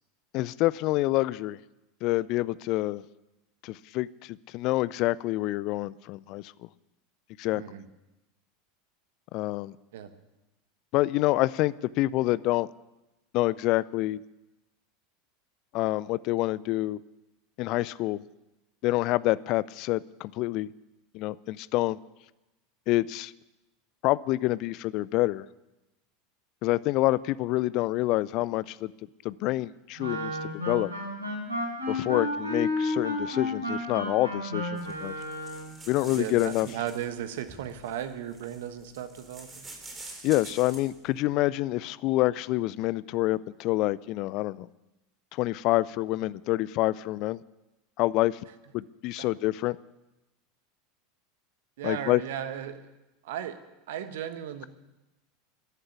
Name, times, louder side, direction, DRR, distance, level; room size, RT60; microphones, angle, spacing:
voice 1, 0.3-1.6 2.0-3.0 3.6-6.5 7.4-7.6 9.3-9.8 10.9-12.7 13.3-14.2 15.7-17.0 17.6-18.2 18.8-20.7 21.1-22.0 22.9-23.3 24.0-25.5 26.6-28.9 29.2-30.9 31.9-35.1 35.9-36.7 40.2-44.7 45.3-47.4 48.0-48.4 48.7-49.8 51.8-52.2, left 18 dB, 45° left, 21 dB, 0.4 m, -27 dB
voice 2, 7.5-7.8 9.9-10.1 32.0-32.3 36.0-39.7 49.2-49.3 51.8-52.9 53.2-53.6 53.9-54.7, right 10 dB, 60° right, 10 dB, 1.3 m, -36 dB
Wind instrument woodwind instrument, 30.0-35.7, left 1 dB, 80° right, 5.0 m, -32 dB
sound 1, 34.8-41.0, right 2 dB, 20° right, 3.5 m, -47 dB
14.0 x 11.5 x 8.4 m, 0.98 s
figure-of-eight pair, 80°, 0 cm